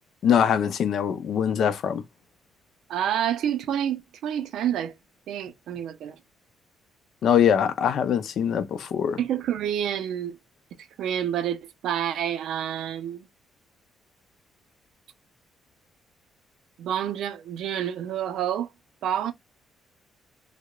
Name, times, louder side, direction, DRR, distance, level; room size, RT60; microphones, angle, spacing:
voice 1, 0.2-2.0 7.2-9.2, left 8 dB, 65° left, 0.4 m, -22 dB
voice 2, 2.9-4.9 5.3-6.2 9.2-10.4 10.8-13.3 16.8-18.7 19.0-19.3, right 10 dB, 80° right, 0.4 m, -28 dB
2.8 x 2.0 x 2.2 m
cardioid pair, 90°, 0 cm